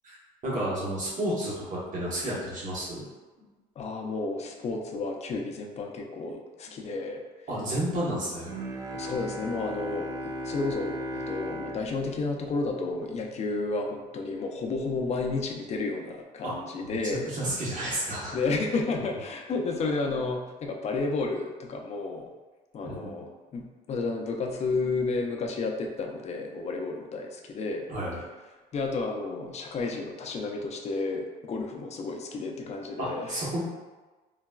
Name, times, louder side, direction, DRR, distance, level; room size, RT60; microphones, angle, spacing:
voice 1, 0.4-3.0 7.5-8.5 16.4-16.5 17.3-18.4 22.8-23.1 27.9-28.2 33.0-33.6, right 1 dB, 50° right, -6 dB, 1.1 m, -31 dB
voice 2, 3.8-7.2 8.9-17.3 18.3-22.3 22.7-27.9 28.7-33.5, left 3 dB, 40° left, 2 dB, 0.5 m, -31 dB
Bowed string instrument, 8.5-13.6, equal, 20° right, 0.5 m, -37 dB
3.9 x 2.1 x 2.3 m, 1.2 s
cardioid pair, 110°, 17 cm